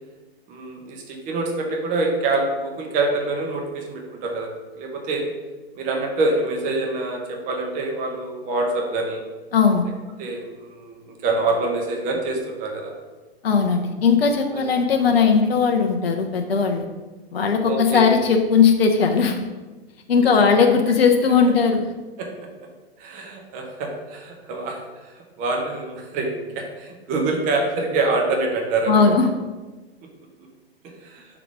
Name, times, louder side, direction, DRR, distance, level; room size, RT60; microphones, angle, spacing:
voice 1, 0.5-5.3 5.8-9.2 10.2-12.9 14.5-14.7 15.0-15.2 17.6-18.1 20.2-20.3 22.2-22.5 23.0-29.1 30.0-30.1 31.0-31.3, right 3 dB, 25° right, 1 dB, 1.0 m, -26 dB
voice 2, 9.5-9.8 13.4-16.8 17.3-19.5 20.1-21.9 28.9-29.3, left 5 dB, 65° left, 3 dB, 0.7 m, -18 dB
6.0 x 3.9 x 4.7 m, 1.2 s
figure-of-eight pair, 120°, 32 cm